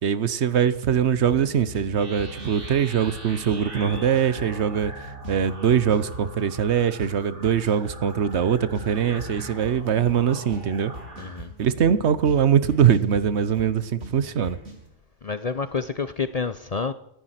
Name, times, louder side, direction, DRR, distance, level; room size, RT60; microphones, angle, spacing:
voice 1, 0.0-10.9 11.6-14.6, right 8 dB, 70° right, 1.1 m, -22 dB
sound 1, 0.9-14.9, right 1 dB, 85° right, 4.2 m, -41 dB
sound 2, 1.9-11.4, right 1 dB, 50° right, 2.6 m, -42 dB
voice 2, 11.2-11.5 15.2-16.9, left 5 dB, 40° left, 0.6 m, -28 dB
14.0 x 10.5 x 9.3 m
omnidirectional pair, 1.2 m